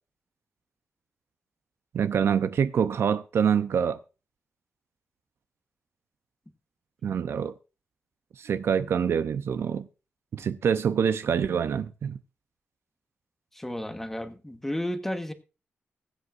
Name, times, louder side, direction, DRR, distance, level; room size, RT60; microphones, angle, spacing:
voice 1, 1.9-4.0 7.0-7.5 8.4-9.9 10.3-12.2, right 7 dB, 70° right, 0.7 m, -25 dB
voice 2, 13.5-15.3, left 1 dB, 5° left, 1.2 m, -32 dB
21.0 x 8.2 x 2.5 m
wide cardioid pair, 145°, 4 cm